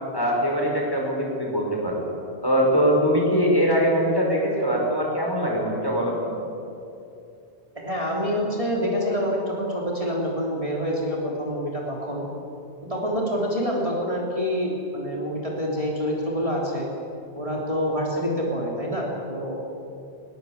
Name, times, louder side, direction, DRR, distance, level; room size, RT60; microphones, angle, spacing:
voice 1, 0.1-2.0 2.4-6.3, equal, 20° left, -1 dB, 5.3 m, -22 dB
voice 2, 7.8-12.3 12.9-16.9 17.4-19.5, equal, 30° right, -3 dB, 3.6 m, -26 dB
21.5 x 21.0 x 8.2 m, 2.7 s
omnidirectional pair, 1.1 m